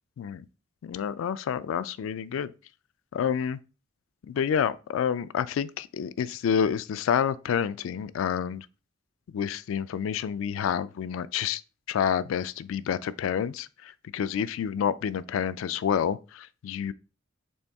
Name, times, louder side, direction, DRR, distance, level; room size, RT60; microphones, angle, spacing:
voice 1, 0.8-2.5 3.1-3.6 4.3-8.7 9.3-11.6 11.9-16.9, left 8 dB, 80° left, 0.3 m, -28 dB
4.2 x 3.0 x 3.5 m
head